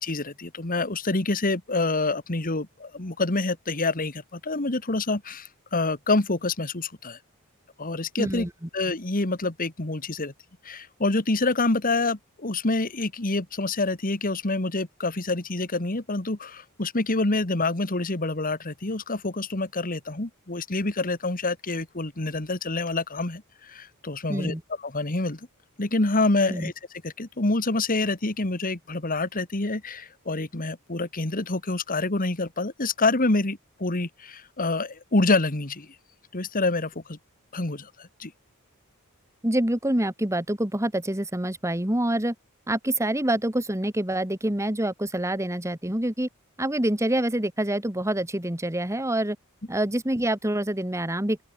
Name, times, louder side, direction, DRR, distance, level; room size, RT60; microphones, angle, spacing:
voice 1, 0.0-7.2 7.8-8.5 8.7-10.3 10.6-24.5 24.8-25.4 25.8-26.7 27.0-35.9 36.3-37.2 37.5-38.3, left 2 dB, 40° left, 1.8 m, -27 dB
voice 2, 8.2-8.7 24.3-24.6 26.5-26.7 39.4-42.4 42.7-46.3 46.6-49.4 49.7-51.4, right 1 dB, 15° right, 1.9 m, -26 dB
open air
head